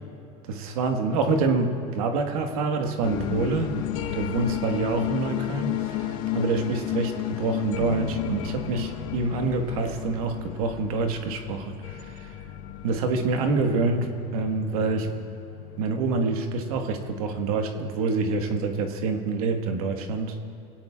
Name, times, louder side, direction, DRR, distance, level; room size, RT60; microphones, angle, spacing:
voice 1, 0.5-3.8 4.1-12.4 12.8-15.1 15.8-20.4, right 4 dB, 90° right, 4 dB, 1.5 m, -27 dB
sound 1, 3.0-18.1, left 12 dB, 75° left, 1.1 m, -33 dB
23.0 x 17.5 x 2.4 m, 2.6 s
supercardioid pair, 115°, 18 cm